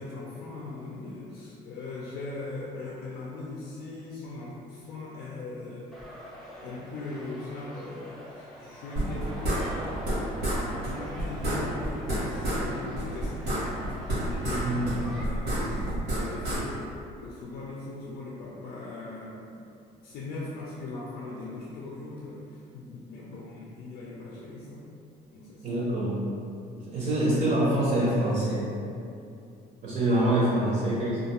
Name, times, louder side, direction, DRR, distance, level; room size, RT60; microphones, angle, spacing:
voice 1, 0.0-5.9 6.6-9.8 10.7-13.7 14.2-16.7 17.2-19.6 20.0-24.8 25.3-25.7, left 2 dB, 70° left, -5 dB, 0.4 m, -39 dB
sound 1, 5.9-15.2, equal, ahead, 0.4 m, -43 dB
sound 2, 9.0-10.2 10.4-10.6 10.8-10.9 11.2-12.6 12.9-14.6 14.9-16.6, right 1 dB, 85° right, 1.0 m, -29 dB
voice 2, 14.6-14.9 25.6-26.2 26.9-28.7 29.8-31.2, right 1 dB, 50° right, -7 dB, 0.6 m, -25 dB
2.3 x 2.2 x 2.8 m, 2.5 s
cardioid pair, 110°, 17 cm